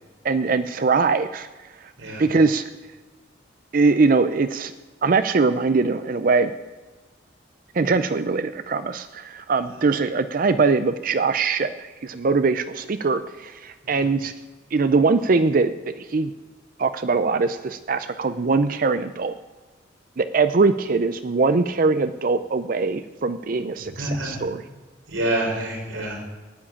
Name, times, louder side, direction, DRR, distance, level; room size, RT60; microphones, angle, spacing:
voice 1, 0.2-1.5 2.2-2.6 3.7-4.7 5.0-6.5 7.7-14.3 14.7-16.3 16.8-19.3 20.2-24.6, right 4 dB, 45° right, 11 dB, 0.5 m, -22 dB
voice 2, 24.0-24.4 25.1-26.2, right 1 dB, 80° right, -1 dB, 4.4 m, -27 dB
9.8 x 8.7 x 8.6 m, 1.3 s
head